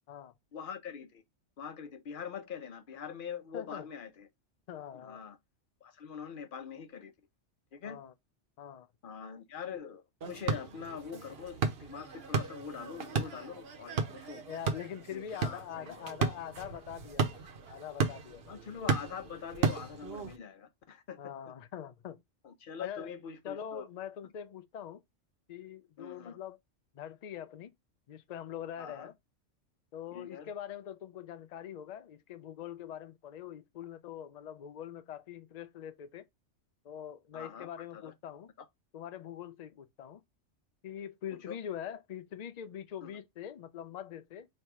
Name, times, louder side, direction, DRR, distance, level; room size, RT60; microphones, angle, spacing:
voice 1, 0.5-1.2 1.6-4.3 4.9-5.4 5.8-7.1 7.7-8.0 9.0-14.4 15.1-16.1 18.5-21.2 22.4-23.9 26.0-26.4 28.8-29.1 30.1-30.5 37.3-38.1 41.3-41.6 43.0-43.1, left 7 dB, 55° left, 0.7 m, -43 dB
voice 2, 3.5-3.9 4.7-5.2 7.8-8.1 8.6-8.9 14.5-17.4 17.7-18.6 21.2-22.2 22.8-23.1 23.4-25.0 25.5-26.6 26.9-27.7 28.1-29.1 29.9-36.2 36.8-38.5 38.9-40.2 40.8-44.5, left 9 dB, 75° left, 0.3 m, -43 dB
sound 1, 10.2-20.4, right 5 dB, 55° right, 1.0 m, -35 dB
3.3 x 2.8 x 4.5 m
omnidirectional pair, 1.2 m